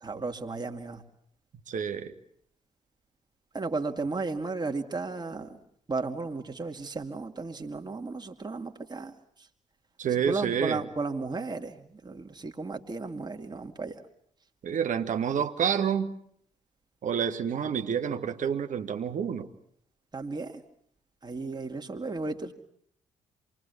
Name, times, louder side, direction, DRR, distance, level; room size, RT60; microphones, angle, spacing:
voice 1, 0.0-1.0 3.5-5.6 5.9-9.1 10.3-14.0 20.1-20.6 21.2-22.5, right 3 dB, 25° right, 2.6 m, -34 dB
voice 2, 1.7-2.1 10.0-10.8 14.6-16.2 17.0-19.5, right 7 dB, 50° right, 1.8 m, -28 dB
27.5 x 21.5 x 8.4 m
figure-of-eight pair, 45°, 17 cm